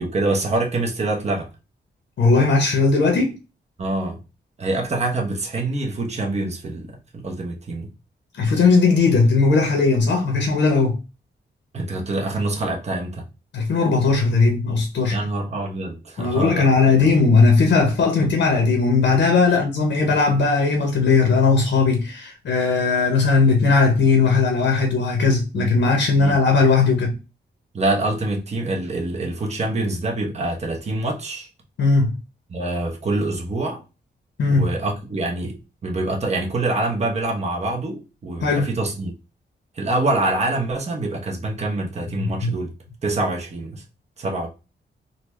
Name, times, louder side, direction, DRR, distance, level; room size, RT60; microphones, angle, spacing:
voice 1, 0.0-1.5 3.8-4.2 4.6-7.9 11.7-13.2 15.1-17.0 18.2-18.3 19.5-19.6 25.5-25.8 26.2-26.4 27.7-31.5 32.5-33.8 34.5-35.6 35.8-39.1 39.7-42.7 43.0-43.8 44.2-44.5, right 2 dB, 35° right, 0.9 m, -25 dB
voice 2, 2.2-3.3 8.4-11.0 13.5-15.2 16.2-27.2 31.8-32.1 34.4-34.7 38.4-38.7 42.2-42.5, left 4 dB, 75° left, 0.9 m, -18 dB
3.9 x 2.2 x 3.1 m
wide cardioid pair, 125°, 19 cm